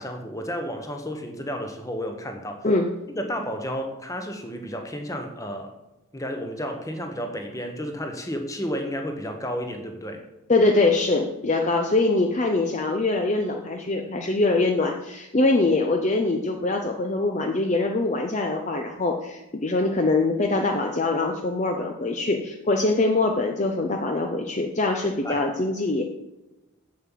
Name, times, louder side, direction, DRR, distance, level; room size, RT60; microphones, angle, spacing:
voice 1, 0.0-2.7 3.1-5.7 6.1-10.3 25.2-25.5, equal, 15° left, 5 dB, 1.0 m, -32 dB
voice 2, 10.5-26.0, left 2 dB, 30° left, 3 dB, 0.6 m, -23 dB
7.5 x 7.5 x 7.4 m, 1.0 s
head